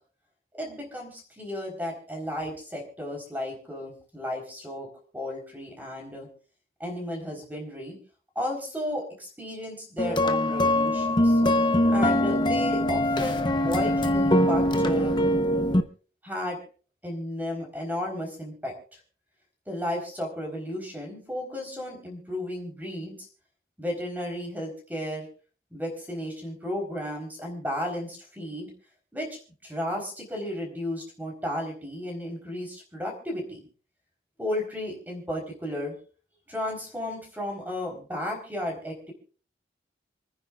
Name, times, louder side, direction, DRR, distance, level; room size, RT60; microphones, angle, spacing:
voice 1, 0.5-4.9 5.1-6.3 6.8-8.0 8.4-11.4 11.9-15.2 16.2-16.6 17.0-18.7 19.7-23.2 23.8-25.3 25.7-28.7 29.1-33.6 34.4-35.9 36.5-39.1, left 1 dB, 10° right, 0 dB, 4.1 m, -34 dB
sound 1, 10.0-15.8, left 1 dB, 25° left, 0.9 m, -22 dB
28.5 x 9.9 x 2.5 m, 0.39 s
head